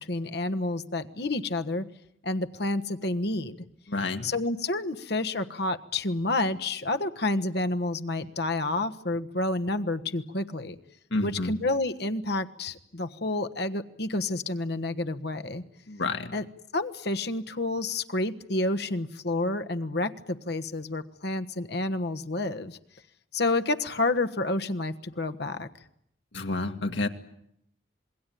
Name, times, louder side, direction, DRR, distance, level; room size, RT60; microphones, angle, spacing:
voice 1, 0.1-1.8 2.2-3.5 4.2-10.8 11.2-15.6 16.3-16.4 16.7-22.8 23.3-25.7, left 2 dB, 60° left, 8 dB, 1.4 m, -29 dB
voice 2, 3.9-4.3 11.1-11.5 15.9-16.3 26.3-27.1, left 2 dB, 80° left, 6 dB, 2.1 m, -29 dB
27.0 x 21.0 x 9.3 m, 0.72 s
head